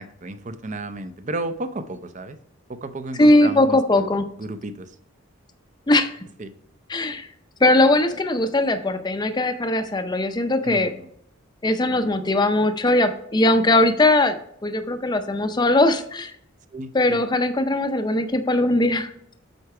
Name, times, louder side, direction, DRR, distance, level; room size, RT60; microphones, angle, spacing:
voice 1, 0.0-2.4 2.7-4.1 4.4-5.0 6.4-6.5 10.6-11.1 11.9-12.1 16.7-17.2, right 2 dB, 35° right, 11 dB, 0.5 m, -33 dB
voice 2, 3.2-4.2 5.9-6.1 6.9-7.3 7.6-10.9 11.6-14.4 14.6-16.3 16.9-19.1, left 2 dB, 20° left, 8 dB, 0.5 m, -20 dB
7.9 x 4.6 x 4.8 m, 0.68 s
head